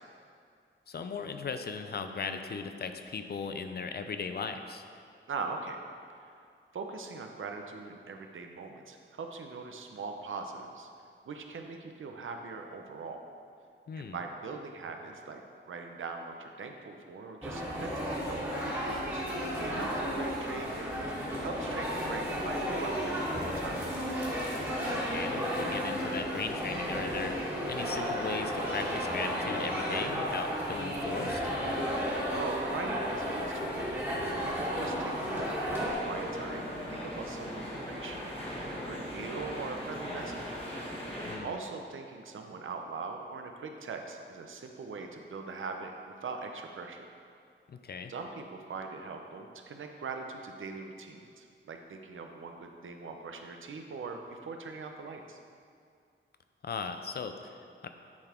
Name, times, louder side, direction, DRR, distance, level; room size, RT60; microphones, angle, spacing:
voice 1, 0.9-4.9 13.9-14.2 24.9-31.5 41.2-41.6 47.7-48.1 56.6-57.9, left 5 dB, 50° left, 7 dB, 0.4 m, -38 dB
voice 2, 5.3-5.8 6.2-6.3 6.7-10.9 11.2-13.2 14.0-21.1 21.4-23.8 32.3-34.0 34.4-38.3 38.6-40.6 41.4-47.1 48.1-55.4, right 4 dB, 75° right, 4 dB, 0.7 m, -41 dB
sound 1, 17.4-35.9, equal, 10° right, 1.6 m, -33 dB
sound 2, 35.8-41.4, equal, 30° left, 1.3 m, -39 dB
9.7 x 4.1 x 4.4 m, 2.3 s
wide cardioid pair, 160°, 21 cm